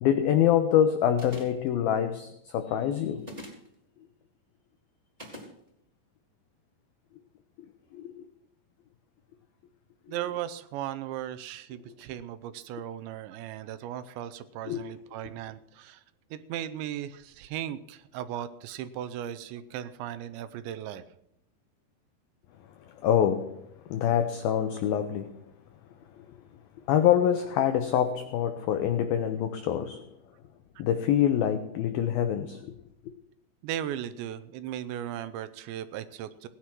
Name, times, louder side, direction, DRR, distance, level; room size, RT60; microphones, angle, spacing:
voice 1, 0.0-3.4 7.9-8.3 14.7-14.8 22.9-25.5 26.2-26.4 26.9-30.1 30.8-32.7, left 9 dB, 90° left, 2.1 m, -26 dB
sound 1, 1.2-1.7 3.2-3.7 5.2-5.5, equal, 10° right, 3.7 m, -43 dB
voice 2, 10.1-16.0 16.3-21.0 33.6-36.5, right 11 dB, 80° right, 2.9 m, -37 dB
18.0 x 10.0 x 6.0 m
omnidirectional pair, 5.4 m